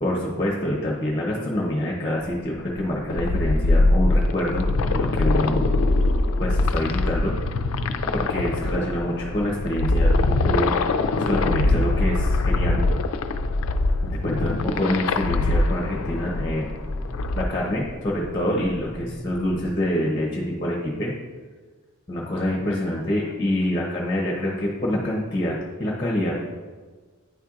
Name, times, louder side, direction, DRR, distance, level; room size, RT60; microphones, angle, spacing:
voice 1, 0.0-5.6 6.4-7.4 8.1-10.7 11.1-12.8 14.0-16.7 17.4-21.1 22.1-26.3, left 1 dB, 20° left, -3 dB, 0.8 m, -26 dB
sound 1, 2.4-19.7, equal, 5° left, 1.6 m, -41 dB
sound 2, 3.1-17.5, left 2 dB, 75° left, 0.4 m, -23 dB
9.5 x 4.4 x 2.5 m, 1.4 s
head